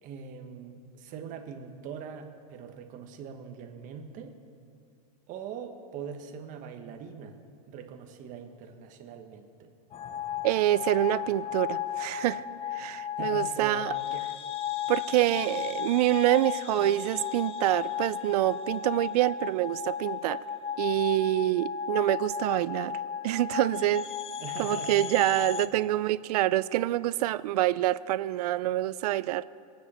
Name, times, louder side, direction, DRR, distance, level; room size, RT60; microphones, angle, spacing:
voice 1, 0.0-4.4 5.3-7.4 7.7-9.7 13.2-14.2 24.4-25.0 25.7-25.8, right 7 dB, 40° right, 5 dB, 1.4 m, -42 dB
sound 1, 9.9-25.7, left 8 dB, 30° left, 0.7 m, -34 dB
voice 2, 10.4-12.4 12.7-13.9 14.9-20.4 20.8-23.0 23.2-24.1 24.6-29.4, right 15 dB, 70° right, 18 dB, 0.5 m, -26 dB
23.5 x 9.4 x 4.4 m, 2.5 s
supercardioid pair, 130°, 21 cm